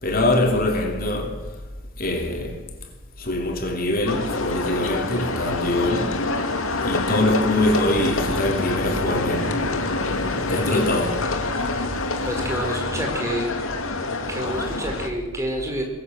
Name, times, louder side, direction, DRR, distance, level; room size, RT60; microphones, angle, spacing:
voice 1, 0.0-1.4 2.0-2.6 3.2-6.2 6.8-9.6 10.4-11.3, left 1 dB, 45° left, 3.1 m, -23 dB
sound 1, 4.1-15.1, left 3 dB, 75° left, 2.5 m, -26 dB
voice 2, 10.5-10.9 12.2-13.5 14.3-15.8, equal, 15° right, 5.2 m, -29 dB
22.5 x 21.5 x 7.9 m
head